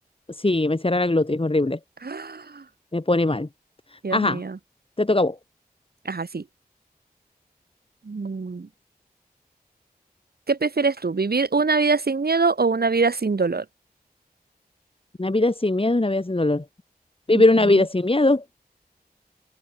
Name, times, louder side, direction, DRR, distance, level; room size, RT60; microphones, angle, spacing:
voice 1, 0.4-1.8 2.9-3.5 4.1-4.4 5.0-5.3 15.2-16.6 17.3-18.4, left 2 dB, 35° left, 4.9 m, -20 dB
voice 2, 2.0-2.6 4.0-4.6 6.0-6.4 8.1-8.7 10.5-13.6 17.3-17.8, right 4 dB, 80° right, 4.5 m, -24 dB
wide cardioid pair, 55°, 16 cm